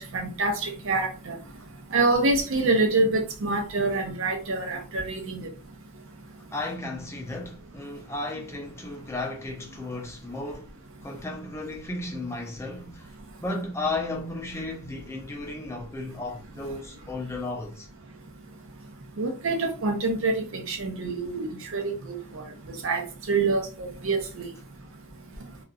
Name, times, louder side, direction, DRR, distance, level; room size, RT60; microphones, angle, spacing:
voice 1, 0.0-1.4 1.9-5.5 19.2-22.4 22.8-24.5, right 3 dB, 60° right, 0.7 m, -26 dB
voice 2, 6.5-10.7 11.0-13.1 13.4-17.9, left 2 dB, 10° left, 0.4 m, -34 dB
2.9 x 2.4 x 2.4 m
head